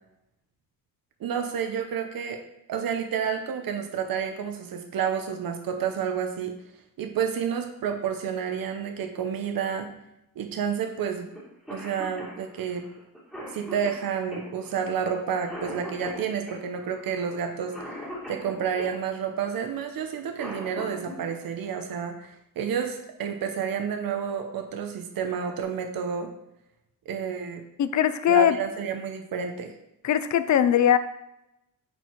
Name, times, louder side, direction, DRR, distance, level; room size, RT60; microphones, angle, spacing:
voice 1, 1.2-2.4 2.7-6.5 7.0-9.9 10.4-11.3 11.7-12.9 13.5-18.0 18.3-26.3 27.1-27.6 28.3-29.7, right 7 dB, 80° right, 5 dB, 1.0 m, -30 dB
Cough, 11.3-11.4 11.7-19.0 20.1-21.2 22.8-22.9 23.9-24.2 24.7-24.8 25.1-25.6, equal, ahead, 2.3 m, -40 dB
voice 2, 27.8-28.6 30.0-31.0, left 10 dB, 55° left, 13 dB, 0.6 m, -20 dB
10.0 x 4.6 x 4.6 m, 0.85 s
wide cardioid pair, 165°, 34 cm